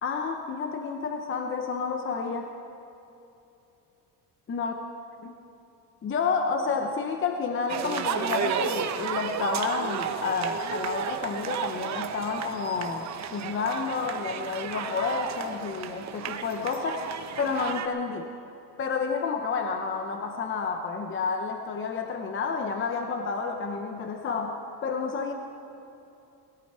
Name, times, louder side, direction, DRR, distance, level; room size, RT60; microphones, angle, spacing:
voice 1, 0.0-2.5 4.5-4.7 5.2-5.3 6.0-18.3 18.8-25.3, left 5 dB, 30° left, 4 dB, 0.9 m, -30 dB
sound 1, 7.7-17.9, right 8 dB, 45° right, 0.9 m, -33 dB
20.5 x 13.0 x 4.4 m, 2.8 s
cardioid pair, 140°, 40 cm